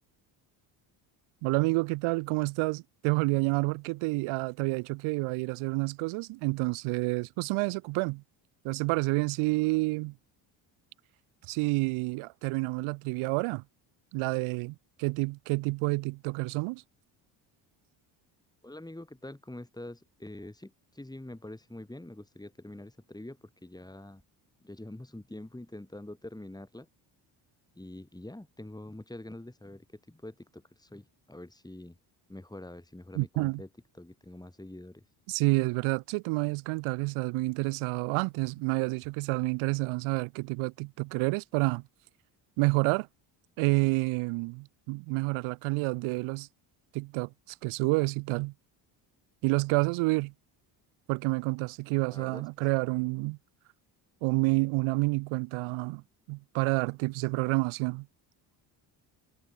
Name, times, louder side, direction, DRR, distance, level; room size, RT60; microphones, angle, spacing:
voice 1, 1.4-8.2 8.6-10.1 11.5-13.6 14.1-16.8 33.1-33.6 35.3-41.8 42.6-43.1 43.6-46.5 46.9-47.3 47.6-48.5 49.4-50.3 51.1-53.4 54.2-56.0 56.3-58.1, right 25 dB, 85° right, 1.1 m, -29 dB
voice 2, 18.6-24.2 24.6-26.9 27.7-32.0 32.3-33.7 33.9-35.0 52.1-52.5, left 1 dB, 10° left, 6.5 m, -45 dB
supercardioid pair, 75°, 48 cm